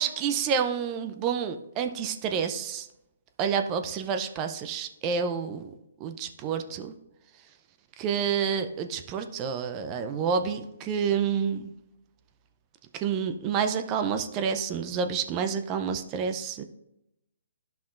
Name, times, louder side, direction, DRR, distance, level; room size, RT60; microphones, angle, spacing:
voice 1, 0.0-2.9 3.4-5.7 6.0-6.9 8.0-11.7 12.9-16.6, right 7 dB, 30° right, 8 dB, 0.5 m, -29 dB
11.5 x 5.7 x 2.5 m, 0.86 s
hypercardioid pair, 140°, 0 cm